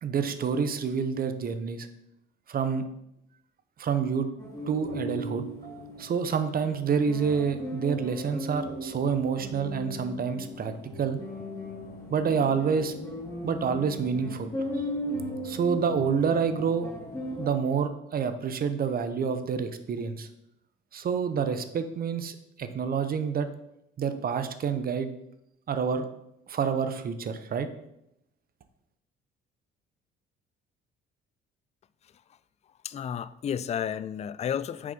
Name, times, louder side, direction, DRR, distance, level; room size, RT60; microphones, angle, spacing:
voice 1, 0.0-1.9 2.5-2.8 3.8-4.3 4.7-5.4 6.0-10.7 11.0-11.2 12.1-12.9 13.4-14.8 15.4-16.9 17.4-20.3 20.9-23.5 24.0-25.1 25.7-26.1 26.5-27.7, right 6 dB, 45° right, 0.9 m, -28 dB
sound 1, 4.4-17.5, equal, 20° left, 3.2 m, -37 dB
voice 2, 32.8-34.9, left 8 dB, 35° left, 0.4 m, -32 dB
6.7 x 5.3 x 5.3 m
supercardioid pair, 75°, 21 cm